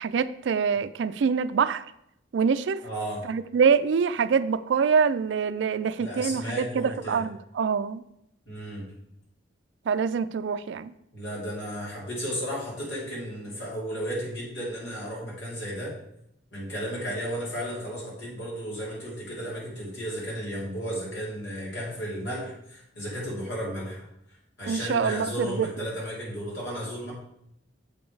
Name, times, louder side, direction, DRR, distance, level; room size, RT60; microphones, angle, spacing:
voice 1, 0.0-1.8 2.3-2.8 3.3-8.0 9.9-10.9 24.7-25.7, right 6 dB, 70° right, 14 dB, 0.3 m, -25 dB
voice 2, 2.8-3.2 6.0-7.2 8.5-8.9 11.1-15.9 16.5-24.0 24.6-27.1, equal, 70° left, -5 dB, 3.3 m, -34 dB
7.1 x 5.3 x 4.6 m, 0.78 s
head